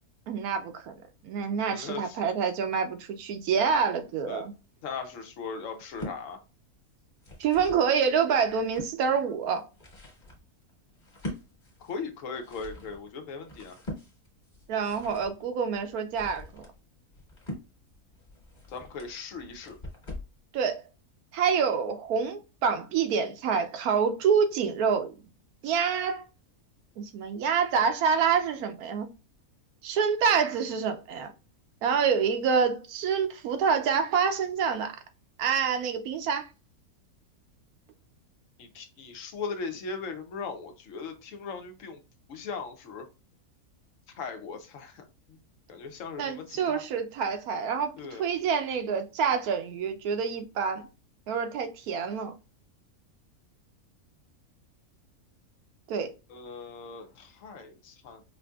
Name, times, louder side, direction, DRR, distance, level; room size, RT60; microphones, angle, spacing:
voice 1, 0.3-0.9 1.2-4.5 7.4-9.6 14.7-16.6 20.5-20.8 21.3-25.1 25.6-26.2 27.0-29.1 29.8-31.3 31.8-35.0 35.4-36.5 46.2-47.9 48.2-50.9 51.3-52.3 55.9-56.1, right 6 dB, 80° right, 1.1 m, -27 dB
voice 2, 1.7-2.2 4.2-4.4 4.8-6.4 11.8-13.8 18.7-19.8 38.6-42.0 42.3-43.1 44.1-45.4 45.7-46.8 48.0-48.2 56.3-58.2, left 5 dB, 65° left, 1.0 m, -39 dB
sound 1, 5.7-6.2 7.0-7.8 8.3-8.9 9.5-20.4, left 1 dB, 35° left, 1.4 m, -43 dB
5.0 x 2.7 x 2.3 m
omnidirectional pair, 1.6 m